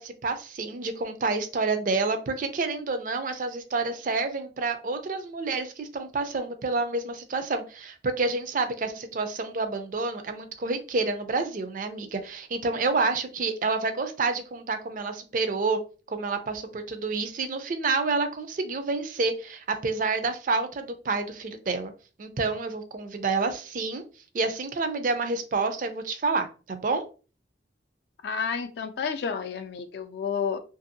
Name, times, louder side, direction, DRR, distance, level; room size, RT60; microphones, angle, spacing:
voice 1, 0.0-15.8 16.1-21.9 22.2-24.0 24.3-27.1, right 3 dB, 45° right, 8 dB, 0.4 m, -28 dB
voice 2, 28.2-30.6, left 6 dB, 65° left, 8 dB, 0.3 m, -30 dB
2.7 x 2.6 x 2.6 m, 0.35 s
head